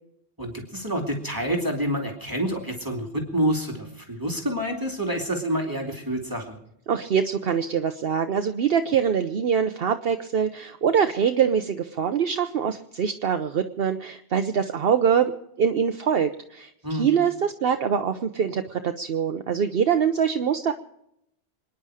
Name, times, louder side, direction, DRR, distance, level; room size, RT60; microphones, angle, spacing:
voice 1, 0.4-6.6 16.8-17.0, equal, 20° right, 1 dB, 2.7 m, -28 dB
voice 2, 6.9-15.3 15.6-20.7, right 7 dB, 65° right, 7 dB, 1.0 m, -24 dB
26.5 x 10.5 x 4.9 m, 0.80 s
omnidirectional pair, 1.1 m